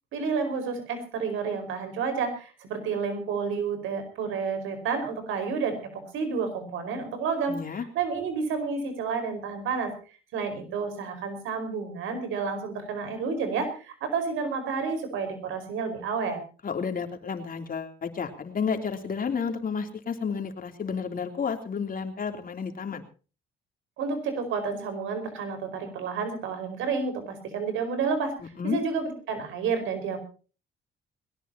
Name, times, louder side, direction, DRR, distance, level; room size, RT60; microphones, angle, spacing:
voice 1, 0.1-9.9 10.3-16.4 24.0-28.3 28.6-30.2, right 5 dB, 90° right, 9 dB, 5.0 m, -30 dB
voice 2, 7.5-7.9 16.6-23.0 28.6-28.8, left 6 dB, 45° left, 5 dB, 3.2 m, -31 dB
21.5 x 18.0 x 2.9 m, 0.36 s
cardioid pair, 90°, 20 cm